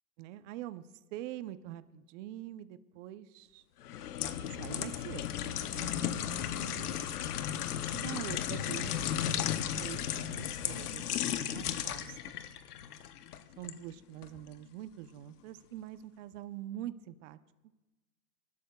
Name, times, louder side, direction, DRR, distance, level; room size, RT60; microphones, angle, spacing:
voice 1, 0.2-0.8 1.1-3.6 4.5-5.3 5.7-5.9 6.2-6.9 7.9-9.0 9.8-11.1 11.4-12.3 13.6-17.4, right 13 dB, 55° right, 12 dB, 0.8 m, -44 dB
sound 1, 3.8-13.8 14.2-14.4, left 10 dB, 90° left, 0.9 m, -35 dB
27.0 x 12.0 x 2.3 m, 1.1 s
hypercardioid pair, 130°, 44 cm